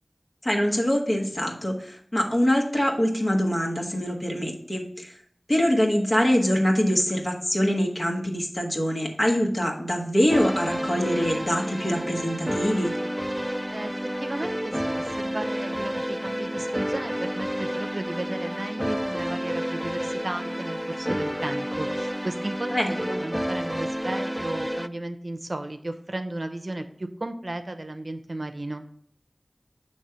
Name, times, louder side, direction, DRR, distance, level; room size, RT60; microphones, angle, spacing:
voice 1, 0.4-5.1 5.5-12.9 22.7-23.2, equal, 50° left, -1 dB, 1.5 m, -24 dB
sound 1, 10.3-24.9, equal, 5° right, 0.3 m, -30 dB
voice 2, 14.2-28.8, right 1 dB, 60° right, 7 dB, 0.6 m, -34 dB
6.4 x 3.3 x 5.6 m, 0.65 s
wide cardioid pair, 40°, 0 cm